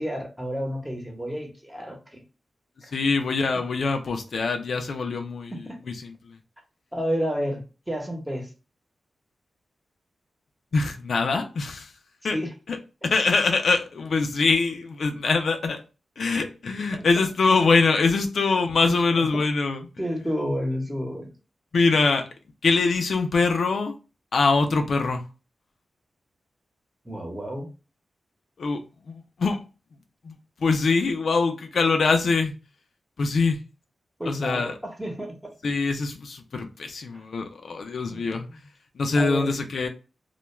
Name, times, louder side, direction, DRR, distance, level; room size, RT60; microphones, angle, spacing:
voice 1, 0.0-2.2 3.5-3.6 5.5-5.8 6.9-8.5 12.2-12.5 16.9-17.1 18.1-18.2 19.1-19.3 20.0-21.3 27.0-27.7 34.2-35.5 38.1-38.6 39.2-39.6, equal, 10° right, 0.9 m, -31 dB
voice 2, 2.9-5.5 6.0-6.1 10.7-11.9 12.2-12.4 12.7-12.8 13.0-15.8 16.2-19.8 21.7-22.3 22.6-23.9 24.3-25.2 28.6-28.8 29.1-29.6 30.3-30.4 30.6-32.5 33.2-33.6 34.3-34.7 35.6-38.5 39.0-39.9, left 4 dB, 75° left, 0.4 m, -23 dB
2.2 x 2.2 x 3.0 m
cardioid pair, 60°, 0 cm